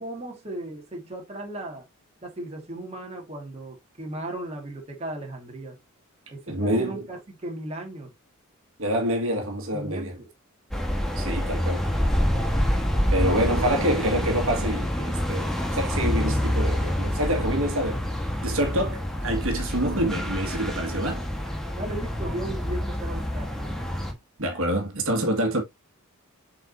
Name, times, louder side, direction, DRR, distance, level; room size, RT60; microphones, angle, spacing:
voice 1, 0.0-1.9 2.2-5.8 6.3-8.1 9.7-10.3 13.5-13.7 21.8-23.7, right 1 dB, 30° right, 1.9 m, -36 dB
voice 2, 6.5-7.0 8.8-10.2 11.1-11.9 13.1-18.0 18.4-21.2 24.4-25.6, right 1 dB, 65° right, 1.9 m, -26 dB
sound 1, 10.7-24.1, equal, ahead, 1.3 m, -27 dB
7.4 x 4.8 x 2.7 m
head